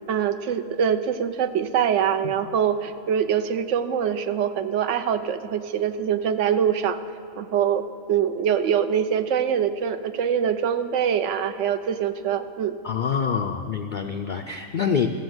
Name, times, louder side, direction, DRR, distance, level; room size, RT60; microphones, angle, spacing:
voice 1, 0.1-7.0 7.4-12.8, right 8 dB, 70° right, 10 dB, 0.9 m, -24 dB
voice 2, 12.8-15.1, left 6 dB, 70° left, 5 dB, 0.4 m, -26 dB
14.5 x 7.0 x 7.8 m, 2.7 s
omnidirectional pair, 1.4 m